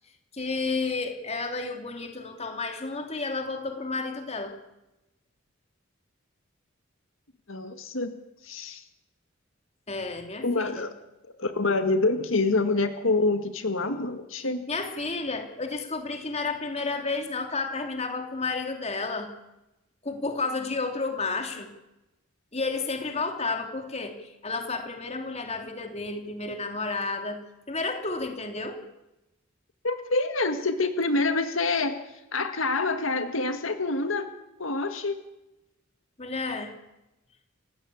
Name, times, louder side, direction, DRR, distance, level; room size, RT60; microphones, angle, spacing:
voice 1, 0.3-4.6 9.9-10.9 14.7-19.3 20.0-21.7 22.5-27.4 27.7-28.8 36.2-36.8, left 3 dB, 30° left, 5 dB, 3.0 m, -31 dB
voice 2, 7.5-8.1 8.4-8.8 10.4-10.9 11.4-14.7 29.8-32.0 32.3-34.3 34.6-35.2, left 3 dB, 80° left, 8 dB, 1.8 m, -26 dB
29.0 x 15.5 x 8.6 m, 0.95 s
head